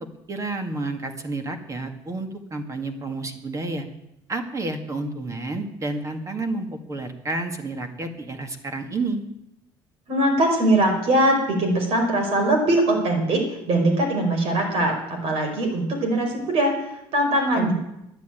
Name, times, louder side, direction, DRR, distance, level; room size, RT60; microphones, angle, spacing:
voice 1, 0.3-3.9 4.3-9.2 17.6-17.7, right 2 dB, 30° right, 6 dB, 2.0 m, -30 dB
voice 2, 10.1-17.7, right 1 dB, 65° right, 3 dB, 5.3 m, -21 dB
12.0 x 10.5 x 9.2 m, 0.85 s
cardioid pair, 120°, 11 cm